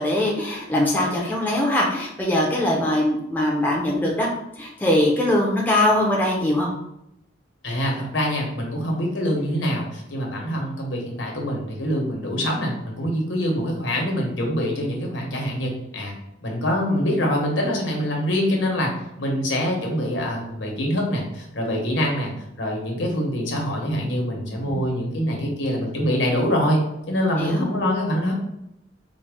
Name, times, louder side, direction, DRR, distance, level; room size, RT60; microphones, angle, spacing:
voice 1, 0.0-4.3 4.6-6.7 24.7-24.8 27.2-27.7, left 1 dB, 10° left, -3 dB, 0.6 m, -22 dB
voice 2, 7.6-16.1 16.4-18.9 19.2-26.8 27.1-28.3, equal, 75° left, 0 dB, 1.0 m, -24 dB
4.0 x 2.2 x 3.4 m, 0.81 s
head